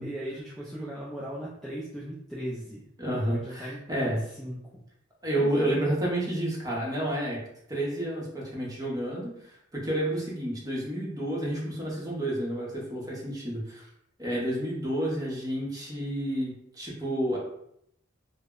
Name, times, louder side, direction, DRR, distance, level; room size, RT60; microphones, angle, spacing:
voice 1, 0.0-2.8 3.2-4.6 5.3-5.9, equal, ahead, -7 dB, 0.4 m, -38 dB
voice 2, 3.0-4.2 5.2-7.4 7.7-13.9 14.2-17.4, right 1 dB, 20° right, -4 dB, 0.7 m, -30 dB
2.0 x 2.0 x 3.5 m, 0.73 s
head